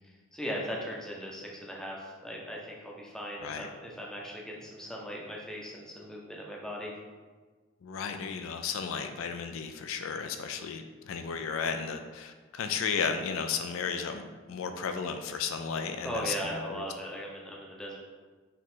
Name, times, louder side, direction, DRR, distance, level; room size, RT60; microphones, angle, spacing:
voice 1, 0.3-6.9 16.0-18.0, equal, 5° left, -2 dB, 0.6 m, -38 dB
voice 2, 7.8-16.9, left 6 dB, 70° left, 7 dB, 0.3 m, -34 dB
4.5 x 3.0 x 3.8 m, 1.4 s
head